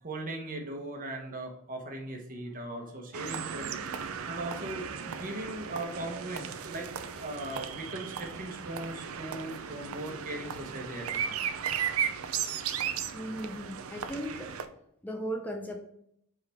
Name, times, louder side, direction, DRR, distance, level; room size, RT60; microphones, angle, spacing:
voice 1, 0.0-3.7 4.2-11.8 12.5-12.6, right 1 dB, 40° right, 1 dB, 1.2 m, -39 dB
sound 1, 3.1-14.7, right 7 dB, 80° right, 0.5 m, -36 dB
voice 2, 13.1-14.5 15.0-15.8, right 1 dB, 10° left, 2 dB, 0.5 m, -36 dB
7.4 x 3.8 x 3.5 m, 0.74 s
head